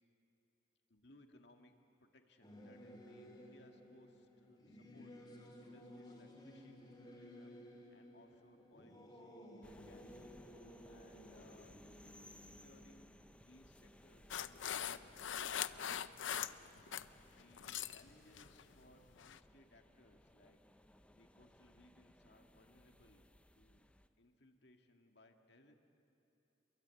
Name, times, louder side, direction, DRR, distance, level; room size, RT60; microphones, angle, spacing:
voice 1, 0.9-5.1 5.6-9.2 9.7-10.3 10.9-11.8 12.4-16.5 17.3-20.8 21.1-23.3 23.5-23.9 24.2-25.7, left 1 dB, 65° left, 4 dB, 2.1 m, -66 dB
Singing / Musical instrument, 2.4-14.3, equal, 25° left, 3.6 m, -57 dB
sound 1, 9.6-24.1, left 1 dB, 5° left, 0.7 m, -63 dB
sound 2, 14.3-17.1 17.4-18.0 18.4-18.6 19.2-19.4, left 9 dB, 85° left, 0.6 m, -41 dB
28.0 x 22.5 x 8.5 m, 3.0 s
head